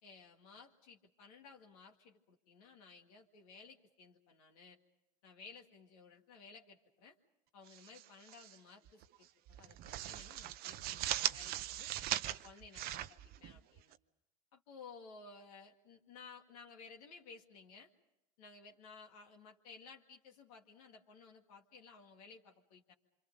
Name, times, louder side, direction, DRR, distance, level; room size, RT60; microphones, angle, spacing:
voice 1, 0.0-4.8 5.2-7.2 7.5-11.9 12.2-14.0 14.5-17.9 18.4-22.9, left 5 dB, 75° left, 1 dB, 2.1 m, -57 dB
sound 1, 7.7-8.6 8.9-9.1 9.5-13.9, right 13 dB, 55° right, 0.8 m, -40 dB
27.0 x 26.5 x 5.4 m, 0.87 s
hypercardioid pair, 80°, 19 cm